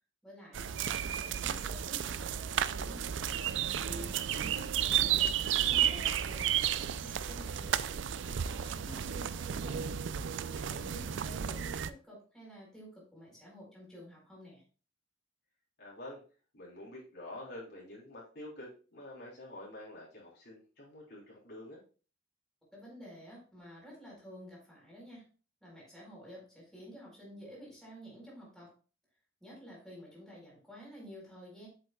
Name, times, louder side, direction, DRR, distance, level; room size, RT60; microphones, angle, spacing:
voice 1, 0.2-3.1 3.8-7.8 8.1-9.8 10.5-14.6 22.7-25.2 25.6-28.7 29.4-31.7, equal, ahead, -5 dB, 4.3 m, -51 dB
sound 1, 0.5-11.9, right 9 dB, 65° right, 0.4 m, -33 dB
voice 2, 4.0-4.5 11.0-11.4 15.8-16.2 16.5-21.8, left 1 dB, 60° left, -5 dB, 3.6 m, -48 dB
7.8 x 7.6 x 2.3 m, 0.36 s
head